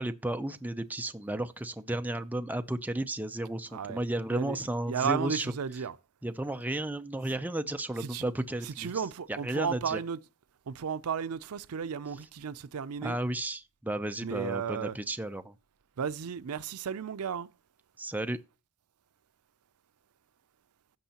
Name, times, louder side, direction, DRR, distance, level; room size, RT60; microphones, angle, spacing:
voice 1, 0.0-5.5 6.2-10.0 13.0-15.5 18.0-18.4, right 1 dB, 10° right, 0.5 m, -33 dB
voice 2, 4.9-5.9 8.1-8.3 8.6-10.2 10.7-13.2 14.2-15.0 16.0-17.5, right 6 dB, 85° right, 0.5 m, -34 dB
16.0 x 6.3 x 2.9 m
head